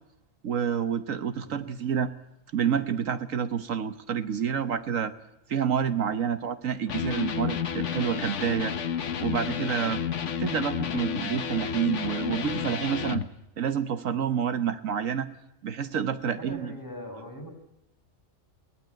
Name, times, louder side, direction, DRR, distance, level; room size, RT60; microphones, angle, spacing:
voice 1, 0.4-2.1 2.5-5.1 5.5-8.7 9.2-10.0 10.4-13.2 13.6-15.3 15.6-16.7, right 8 dB, 75° right, 10 dB, 1.4 m, -28 dB
voice 2, 1.4-1.7 16.2-17.5, equal, 15° left, 0 dB, 6.0 m, -41 dB
Electric guitar, 6.9-13.3, left 8 dB, 65° left, 1.3 m, -31 dB
22.0 x 18.0 x 9.2 m, 0.85 s
omnidirectional pair, 1.4 m